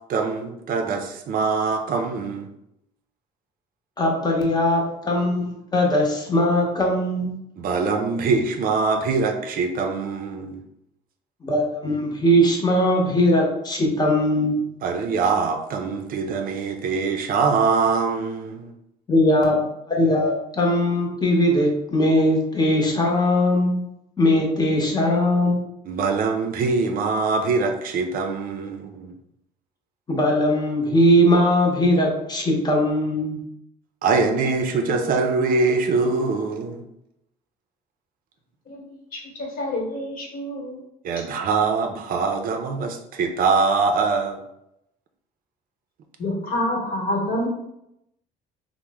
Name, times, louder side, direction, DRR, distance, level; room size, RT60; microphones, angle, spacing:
voice 1, 0.1-2.5 7.6-10.6 14.8-18.7 25.8-29.1 34.0-36.8 41.0-44.4, right 4 dB, 55° right, 4 dB, 0.4 m, -23 dB
voice 2, 4.0-7.3 11.4-14.6 19.1-19.6 19.9-23.8 24.2-25.6 30.1-33.4, left 1 dB, 25° left, 0 dB, 0.8 m, -20 dB
voice 3, 39.4-40.8 46.2-47.5, left 1 dB, 55° left, -1 dB, 1.1 m, -27 dB
2.9 x 2.0 x 3.4 m, 0.80 s
cardioid pair, 110°, 17 cm